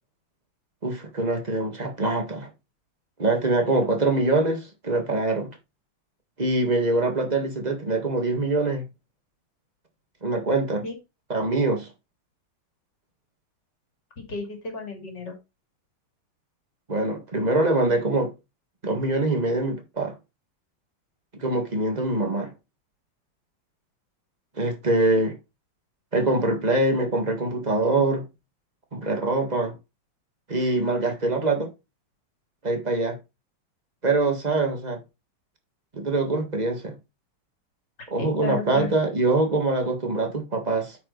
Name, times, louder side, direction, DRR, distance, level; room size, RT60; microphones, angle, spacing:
voice 1, 0.8-2.5 3.2-5.6 6.4-8.8 10.2-10.8 11.3-11.9 16.9-18.3 18.8-20.1 21.3-22.5 24.6-25.3 26.1-28.3 28.9-29.7 30.5-31.7 32.6-33.2 34.0-35.0 35.9-37.0 38.1-41.0, right 2 dB, 20° right, 1.7 m, -24 dB
voice 2, 14.2-15.4 38.2-38.9, left 5 dB, 55° left, 3.2 m, -33 dB
8.9 x 5.6 x 4.0 m
omnidirectional pair, 2.4 m